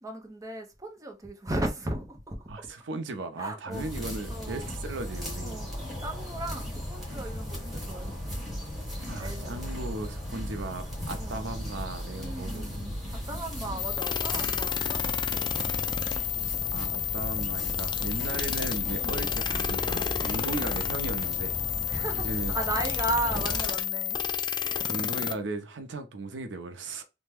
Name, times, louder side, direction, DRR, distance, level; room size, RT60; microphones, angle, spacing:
voice 1, 0.0-2.7 3.4-3.9 4.3-4.7 5.4-5.7 6.0-8.4 9.2-9.6 11.2-11.5 12.1-16.0 19.0-19.2 20.3-20.7 21.9-24.2 24.6-25.0, right 1 dB, 20° right, 0.7 m, -36 dB
voice 2, 2.5-5.7 9.0-12.8 16.3-21.6 22.2-22.5 24.9-27.0, right 2 dB, 85° right, 0.6 m, -37 dB
sound 1, 3.7-23.7, equal, ahead, 1.5 m, -36 dB
sound 2, 13.8-25.3, left 8 dB, 25° left, 0.4 m, -30 dB
3.3 x 2.1 x 3.4 m
head